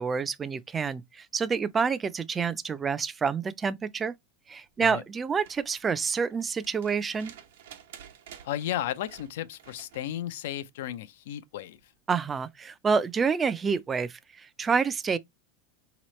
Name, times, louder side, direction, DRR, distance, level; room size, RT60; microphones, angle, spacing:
voice 1, 0.0-4.1 4.5-7.3 12.1-15.2, right 5 dB, 20° right, 0.4 m, -28 dB
sound 1, 5.3-10.1 11.7-11.8, right 9 dB, 85° right, 1.0 m, -51 dB
voice 2, 8.4-11.8, left 12 dB, 80° left, 0.5 m, -34 dB
3.8 x 3.0 x 3.1 m
supercardioid pair, 120°, 0 cm